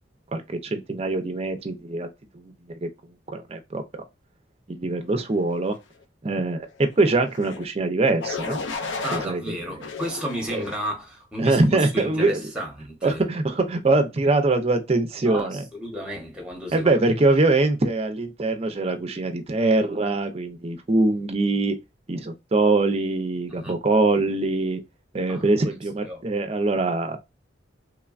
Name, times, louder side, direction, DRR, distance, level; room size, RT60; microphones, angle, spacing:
voice 1, 0.3-2.1 2.3-2.9 3.3-4.0 4.7-5.8 6.2-8.6 9.1-9.5 10.5-10.6 11.4-12.4 13.0-15.6 16.7-21.7 22.1-24.8 25.1-27.2, right 2 dB, 30° right, 0.4 m, -23 dB
sound 1, 7.3-7.7 8.2-9.3 9.8-10.8 11.4-11.8, left 4 dB, 65° left, 0.4 m, -33 dB
voice 2, 9.0-13.2 15.2-16.9 23.5-23.8 25.3-25.4 26.0-26.2, equal, 5° right, 0.8 m, -33 dB
3.2 x 2.2 x 2.3 m
head